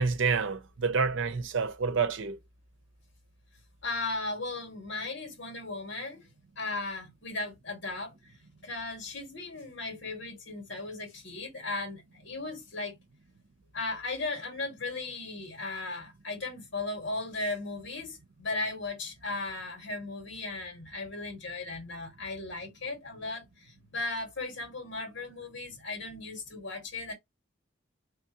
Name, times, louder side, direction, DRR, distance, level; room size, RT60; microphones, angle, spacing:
voice 1, 0.0-2.4, right 5 dB, 90° right, 0.6 m, -28 dB
voice 2, 3.8-6.3 6.6-8.3 8.6-12.9 13.7-27.1, left 2 dB, 80° left, 1.9 m, -36 dB
3.5 x 3.2 x 2.9 m
head